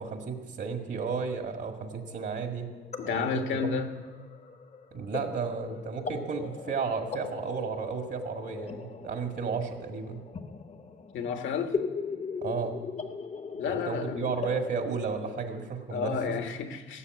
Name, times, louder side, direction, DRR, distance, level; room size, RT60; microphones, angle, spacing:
voice 1, 0.0-2.7 3.0-3.8 4.9-10.2 12.4-12.8 13.6-16.2, right 5 dB, 60° right, 5 dB, 1.8 m, -33 dB
sound 1, 1.8-15.6, left 5 dB, 35° left, 0.9 m, -40 dB
voice 2, 3.0-3.9 11.1-11.8 13.5-14.5 15.9-17.0, left 6 dB, 75° left, 7 dB, 1.4 m, -31 dB
16.0 x 6.9 x 9.3 m, 1.3 s
cardioid pair, 90°, 20 cm